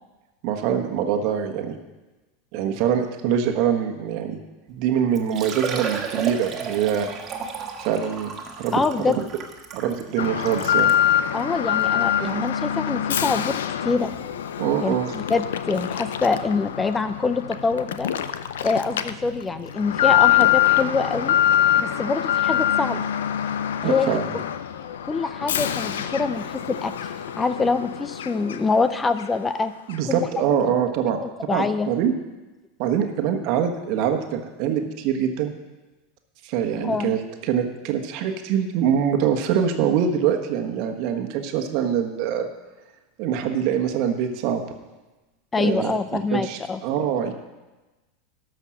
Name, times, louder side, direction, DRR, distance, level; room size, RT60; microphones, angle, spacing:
voice 1, 0.4-1.8 2.5-4.4 4.7-7.1 7.8-9.0 9.7-10.9 14.6-15.1 23.8-24.3 29.9-31.2 31.5-32.1 32.8-35.5 36.4-42.5 43.2-44.6 45.6-45.9 46.3-47.3, right 8 dB, 55° right, 5 dB, 1.3 m, -24 dB
Liquid, 4.7-4.8 5.1-11.0 11.7-11.8 12.3-12.4 14.0-14.1 14.3-14.4, right 6 dB, 35° right, 1.6 m, -33 dB
voice 2, 8.7-9.2 11.3-13.5 13.8-14.1 14.8-18.1 18.6-21.4 21.8-23.0 23.8-24.4 25.0-26.9 27.4-29.7 30.1-30.4 31.5-31.9 36.8-37.1 45.5-46.8, left 4 dB, 20° left, 12 dB, 0.6 m, -25 dB
Alarm, 10.2-28.8 29.2-29.3 29.9-30.0, left 11 dB, 80° left, 0.5 m, -24 dB
13.0 x 5.8 x 6.3 m, 1.1 s
hypercardioid pair, 95°, 0 cm